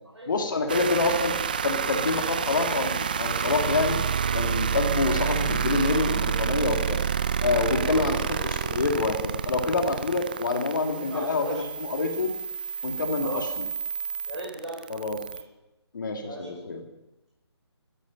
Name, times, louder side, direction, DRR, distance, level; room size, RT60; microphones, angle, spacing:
voice 1, 0.3-1.3 1.6-4.0 4.3-7.0 7.4-8.2 8.4-12.3 12.8-13.6 14.9-15.2 15.9-16.8, left 3 dB, 45° left, 4 dB, 2.2 m, -27 dB
sound 1, 0.7-15.4, right 7 dB, 20° right, 0.4 m, -29 dB
voice 2, 11.0-11.7 13.1-13.5 14.3-15.4 16.2-16.8, right 1 dB, 90° right, -4 dB, 5.2 m, -37 dB
13.0 x 13.0 x 5.7 m, 0.97 s
figure-of-eight pair, 150°, 14 cm